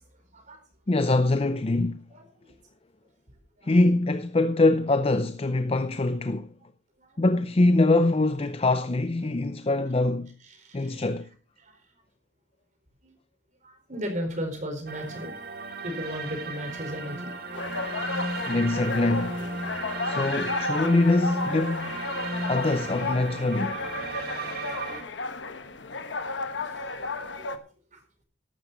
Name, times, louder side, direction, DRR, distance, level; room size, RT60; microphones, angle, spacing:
voice 1, 0.9-2.0 3.6-6.5 7.2-10.3 10.7-11.3 18.4-19.4 20.0-22.1 22.5-23.8, left 2 dB, 35° left, 0.6 m, -23 dB
voice 2, 2.1-2.5 3.6-3.7 7.0-7.2 10.5-11.1 11.6-11.7 13.0-13.1 13.6-17.3 25.5-25.6 26.3-27.5 27.9-28.0, equal, 45° right, 4.3 m, -37 dB
sound 1, 14.9-25.0, right 3 dB, 60° right, 2.1 m, -35 dB
sound 2, 17.5-27.6, left 3 dB, 85° left, 1.2 m, -33 dB
13.5 x 12.0 x 3.9 m
head